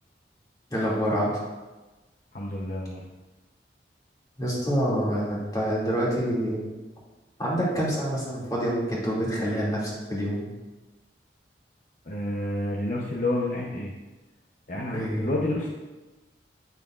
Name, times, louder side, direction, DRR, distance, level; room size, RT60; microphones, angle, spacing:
voice 1, 0.7-1.4 4.4-6.7 7.4-10.5 14.9-15.3, equal, 20° left, -6 dB, 2.4 m, -27 dB
voice 2, 2.3-3.0 12.0-13.9 14.7-15.7, left 1 dB, 50° left, -2 dB, 0.8 m, -29 dB
9.0 x 8.3 x 2.5 m, 1.2 s
head